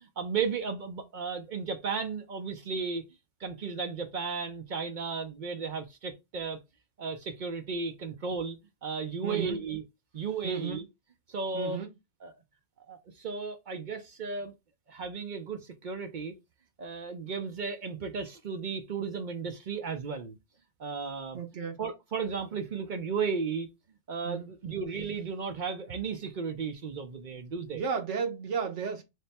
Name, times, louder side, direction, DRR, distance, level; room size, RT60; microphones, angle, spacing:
voice 1, 0.0-3.0 3.4-6.6 7.0-9.8 10.1-10.8 11.3-11.8 12.2-12.3 12.8-14.5 14.9-16.3 16.8-20.4 20.8-21.4 21.8-23.7 24.1-27.8, right 5 dB, 55° right, 0.6 m, -34 dB
voice 2, 9.2-9.6 10.4-10.8 11.5-11.9 21.3-21.8 24.2-24.5 27.7-29.0, right 6 dB, 80° right, 1.2 m, -33 dB
3.4 x 2.1 x 4.1 m
omnidirectional pair, 1.2 m